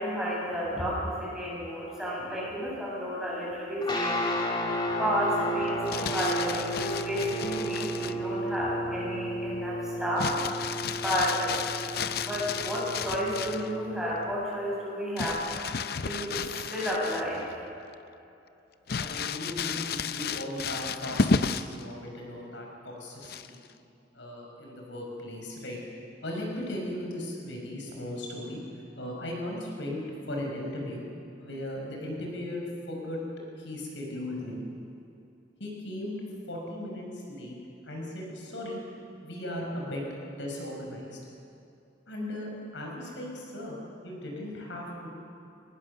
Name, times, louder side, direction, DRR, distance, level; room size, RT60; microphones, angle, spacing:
voice 1, 0.0-4.2 5.0-10.3 11.0-11.6 12.2-15.4 16.0-16.4 16.7-17.4, equal, 5° right, -7 dB, 7.4 m, -31 dB
sound 1, 3.8-14.3, equal, 25° left, 2.3 m, -33 dB
Crumpling crinkling, 5.7-8.2 10.2-13.7 15.2-17.5 17.9-18.0 18.9-21.8 23.2-23.7, left 5 dB, 55° left, 0.6 m, -32 dB
voice 2, 18.9-23.6 24.1-25.8 26.2-28.6 29.0-31.0 31.4-33.2 33.6-34.6 35.6-36.2 36.5-37.6 37.9-38.8 39.2-40.0 40.3-41.2 42.1-43.8 44.0-45.2, left 1 dB, 85° left, 0 dB, 5.3 m, -37 dB
23.5 x 19.5 x 6.6 m, 2.7 s
head